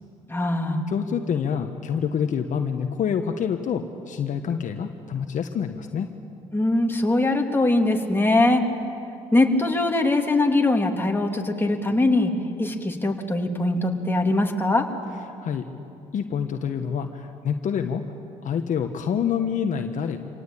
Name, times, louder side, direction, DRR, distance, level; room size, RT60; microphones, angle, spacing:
voice 1, 0.3-0.8 6.5-8.6 9.3-12.3 12.6-14.9, left 2 dB, 15° left, 2 dB, 2.8 m, -21 dB
voice 2, 0.9-6.1 15.4-15.6 16.1-18.0 18.4-20.2, left 7 dB, 55° left, 6 dB, 1.3 m, -27 dB
26.0 x 18.0 x 8.6 m, 2.6 s
supercardioid pair, 70°, 16 cm